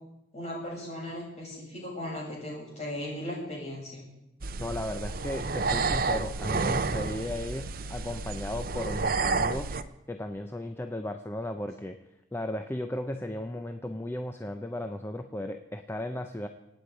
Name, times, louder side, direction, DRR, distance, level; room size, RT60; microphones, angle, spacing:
voice 1, 0.3-4.0, left 1 dB, 35° left, -4 dB, 7.0 m, -37 dB
sound 1, 4.4-9.8, right 4 dB, 50° right, 0.7 m, -30 dB
voice 2, 4.6-9.7 10.1-12.0 12.3-16.5, left 1 dB, 10° left, 7 dB, 0.6 m, -35 dB
26.0 x 8.9 x 4.9 m, 0.90 s
head